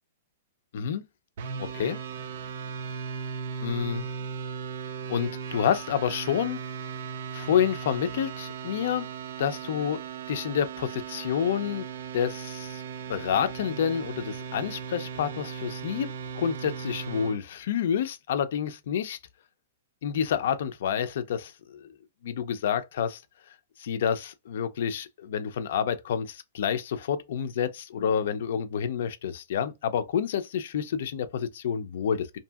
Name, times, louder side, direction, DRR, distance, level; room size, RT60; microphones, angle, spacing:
voice 1, 0.7-1.0 1.6-2.0 3.6-4.1 5.1-6.6 7.3-9.1 9.4-10.0 10.3-11.9 12.1-12.8 13.1-16.1 16.3-19.2 20.0-21.9 22.2-23.2 23.8-32.4, left 8 dB, 65° left, 0.4 m, -28 dB
sound 1, 1.4-17.4, right 6 dB, 65° right, 0.4 m, -37 dB
2.6 x 2.6 x 2.3 m
hypercardioid pair, 145°, 0 cm